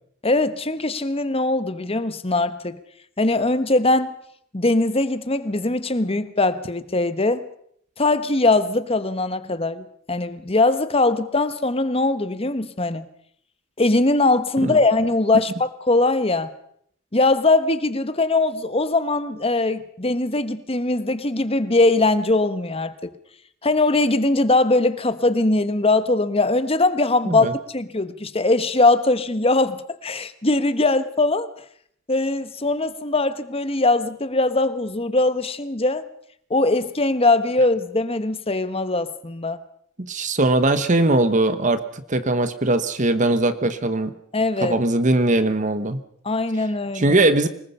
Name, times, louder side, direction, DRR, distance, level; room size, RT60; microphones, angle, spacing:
voice 1, 0.2-2.8 3.2-4.1 4.5-7.4 8.0-13.1 13.8-16.5 17.1-23.1 23.6-31.5 32.1-36.0 36.5-39.6 44.3-44.8 46.2-47.2, left 2 dB, 30° left, 1.3 m, -21 dB
voice 2, 40.0-44.1 44.6-46.0 46.9-47.5, right 2 dB, 40° right, 1.2 m, -20 dB
25.0 x 20.5 x 5.6 m
head